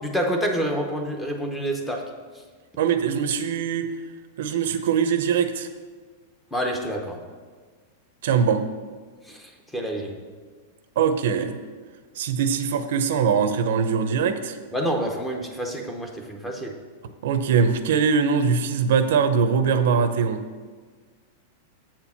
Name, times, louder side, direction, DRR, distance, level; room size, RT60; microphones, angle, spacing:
voice 1, 0.0-2.1 6.5-7.2 9.3-10.2 14.7-16.7, equal, 5° left, 2 dB, 0.7 m, -28 dB
voice 2, 2.8-3.9 4.4-5.7 8.2-8.6 11.0-11.6 12.2-14.6 17.2-20.4, right 6 dB, 60° right, 9 dB, 0.6 m, -22 dB
7.6 x 4.4 x 7.1 m, 1.5 s
supercardioid pair, 170°, 0 cm